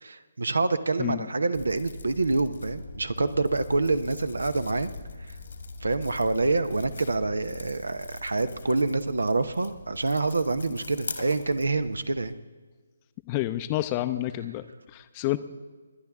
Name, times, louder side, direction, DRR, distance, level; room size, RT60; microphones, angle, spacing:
voice 1, 0.0-4.9 5.3-5.4 5.8-12.3, right 3 dB, 80° right, 12 dB, 0.9 m, -26 dB
sound 1, 1.5-12.3, left 3 dB, 65° left, 1.7 m, -42 dB
voice 2, 13.3-14.6 14.9-15.4, left 16 dB, 25° left, 12 dB, 0.7 m, -29 dB
21.0 x 10.5 x 3.6 m, 1.4 s
figure-of-eight pair, 145°, 0 cm